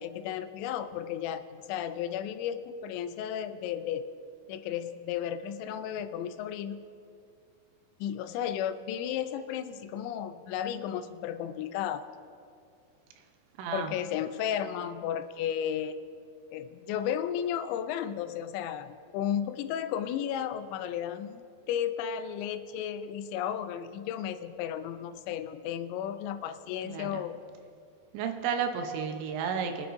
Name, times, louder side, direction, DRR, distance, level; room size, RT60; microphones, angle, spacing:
voice 1, 0.0-4.1 4.5-6.8 8.0-12.1 13.7-16.0 16.5-27.4, left 9 dB, 90° left, 11 dB, 2.9 m, -34 dB
voice 2, 13.6-14.0 26.8-27.3 28.1-29.9, right 6 dB, 90° right, 6 dB, 3.2 m, -32 dB
22.5 x 9.9 x 2.6 m, 2.4 s
omnidirectional pair, 5.1 m